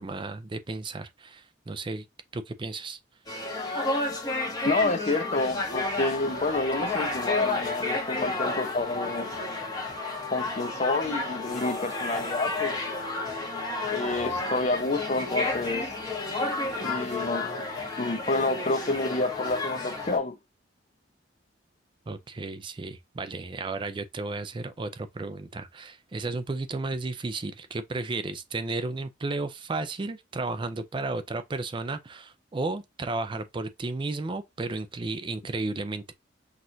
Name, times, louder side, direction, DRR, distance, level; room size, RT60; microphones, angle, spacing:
voice 1, 0.0-2.1 2.3-3.0 22.1-36.1, right 3 dB, 25° right, 0.4 m, -33 dB
sound 1, 3.3-20.2, left 2 dB, 20° left, 1.1 m, -31 dB
voice 2, 4.6-9.3 10.3-12.7 13.9-15.9 16.8-17.6 18.0-20.4, left 2 dB, 40° left, 0.6 m, -28 dB
6.1 x 2.5 x 2.6 m
head